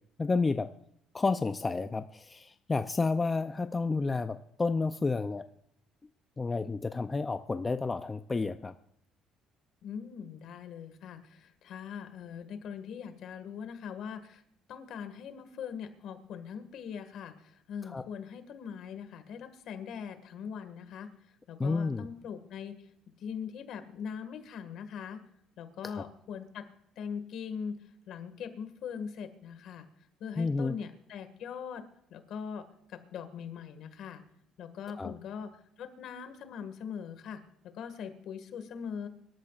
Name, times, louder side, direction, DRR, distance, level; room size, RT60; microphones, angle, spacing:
voice 1, 0.2-0.7 1.1-5.4 6.4-8.7 17.9-18.0 21.6-22.1 25.8-26.0 30.4-30.8 35.0-35.1, left 3 dB, 20° left, 9 dB, 0.5 m, -30 dB
voice 2, 9.8-14.4 14.7-21.1 21.5-22.8 23.2-25.2 25.6-26.7 27.0-27.7 28.1-29.9 30.2-31.8 32.1-32.6 32.9-34.2 34.6-35.5 35.8-39.1, left 7 dB, 60° left, 8 dB, 1.9 m, -41 dB
24.5 x 13.0 x 2.5 m, 0.72 s
cardioid pair, 135°, 0 cm